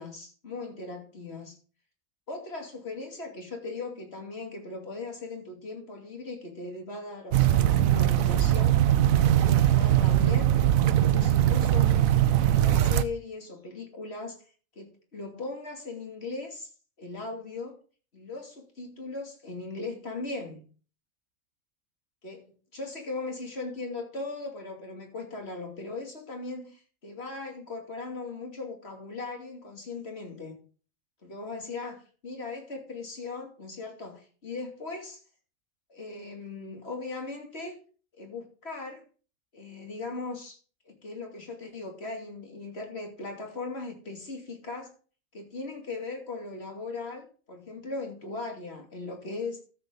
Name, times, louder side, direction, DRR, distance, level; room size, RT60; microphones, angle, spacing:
voice 1, 0.0-1.6 2.3-8.8 9.1-10.5 10.9-12.1 12.4-14.4 14.7-16.7 17.0-17.7 18.1-20.6 22.2-30.6 31.2-35.2 35.9-37.8 38.2-39.0 39.5-40.6 40.9-44.9 45.3-49.6, left 3 dB, 45° left, 2 dB, 3.0 m, -38 dB
sound 1, 7.3-13.0, right 12 dB, 75° right, 1.1 m, -21 dB
13.5 x 7.8 x 3.9 m, 0.38 s
omnidirectional pair, 1.5 m